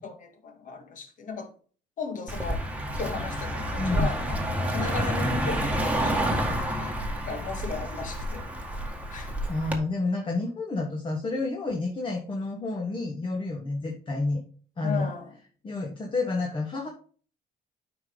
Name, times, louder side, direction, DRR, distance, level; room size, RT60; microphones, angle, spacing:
voice 1, 0.0-1.5 2.0-2.7 3.0-4.4 4.7-7.0 7.2-8.5 9.1-9.3 14.8-15.3, left 5 dB, 50° left, 1.8 m, -36 dB
Car passing by, 2.3-9.8, equal, 10° right, 1.6 m, -29 dB
voice 2, 3.8-4.1 9.5-14.4 14.8-15.1 15.6-16.9, left 3 dB, 30° left, 1.5 m, -29 dB
8.7 x 5.2 x 3.9 m
cardioid pair, 110°, 17 cm